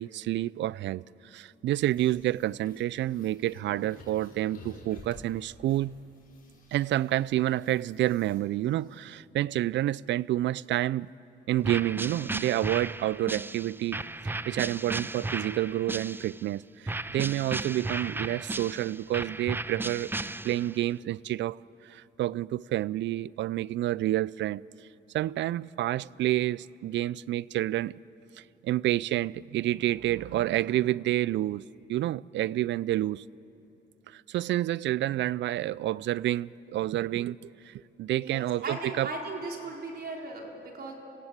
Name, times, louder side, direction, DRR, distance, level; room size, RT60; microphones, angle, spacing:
voice 1, 0.0-5.9 6.7-11.1 11.5-20.1 20.4-21.6 21.8-24.6 25.1-28.0 28.4-31.6 31.9-33.2 34.1-39.1, right 14 dB, 65° right, 0.4 m, -29 dB
sound 1, 1.8-9.0, left 2 dB, 45° left, 6.8 m, -52 dB
sound 2, 11.6-16.5 16.9-20.8, right 2 dB, 10° right, 0.5 m, -35 dB
voice 2, 38.2-40.9, right 3 dB, 50° right, 4.2 m, -37 dB
27.5 x 16.5 x 8.3 m
cardioid pair, 90°, 20 cm